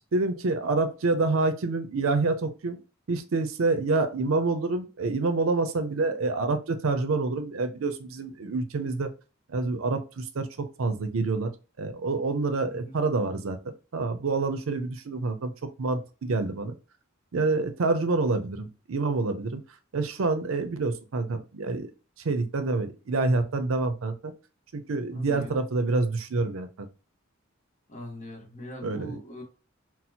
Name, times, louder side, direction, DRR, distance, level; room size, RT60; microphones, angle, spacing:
voice 1, 0.1-2.8 3.1-9.1 9.5-11.5 11.8-16.8 17.3-19.6 19.9-21.9 22.2-24.3 24.7-26.9 28.8-29.2, right 3 dB, 85° right, 9 dB, 0.5 m, -27 dB
voice 2, 12.7-13.0 25.1-25.5 27.9-29.4, equal, 40° left, 2 dB, 1.0 m, -41 dB
4.2 x 2.0 x 2.8 m, 0.34 s
head